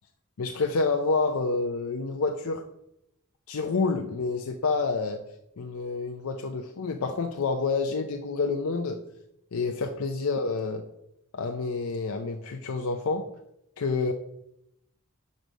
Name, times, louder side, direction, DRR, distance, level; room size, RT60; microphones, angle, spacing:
voice 1, 0.4-2.6 3.5-5.2 5.6-9.0 9.5-10.9 11.3-13.3 13.8-14.1, left 4 dB, 85° left, 4 dB, 0.6 m, -28 dB
6.3 x 5.2 x 5.1 m, 0.82 s
head